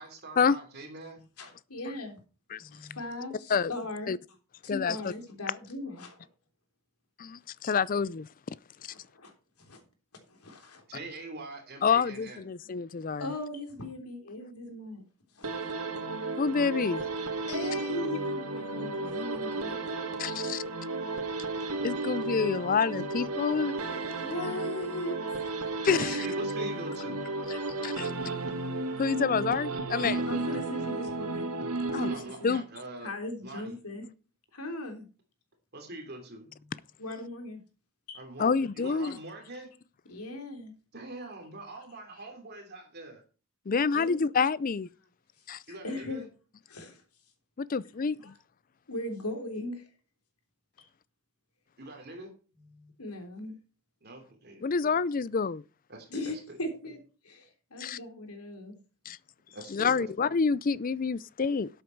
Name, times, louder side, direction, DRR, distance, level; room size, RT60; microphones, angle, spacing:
voice 1, 0.0-1.2 10.9-12.4 26.0-27.2 32.0-33.1 33.4-33.8 35.7-36.5 38.1-38.5 38.7-39.7 40.9-43.2 45.7-46.3 51.8-52.3 54.0-55.0 55.9-56.6 59.5-60.3, right 2 dB, 45° right, 3.2 m, -43 dB
voice 2, 1.4-2.2 2.6-4.1 4.6-6.3 8.9-9.3 9.6-9.8 10.3-10.8 13.2-15.0 15.3-15.6 17.5-19.8 24.2-25.2 30.2-31.5 31.9-32.6 33.0-34.1 34.5-35.1 36.6-37.6 38.1-38.2 40.1-40.7 43.9-44.2 45.5-46.2 46.7-47.0 48.2-48.3 48.9-49.9 50.8-50.9 52.6-53.5 56.1-57.0 57.2-58.8, left 1 dB, 85° left, 3.3 m, -39 dB
voice 3, 4.7-5.1 7.2-8.3 11.8-13.3 16.4-17.0 20.2-20.6 21.8-23.7 25.8-26.3 27.8-28.1 29.0-30.2 31.9-32.1 32.4-32.6 38.4-39.2 43.7-44.9 45.5-45.6 47.6-48.3 54.6-55.6 57.8-58.0 59.1-59.2 59.7-61.7, left 5 dB, 40° left, 0.4 m, -28 dB
sound 1, 15.4-32.6, right 2 dB, 90° right, 2.1 m, -33 dB
12.5 x 7.9 x 4.6 m
head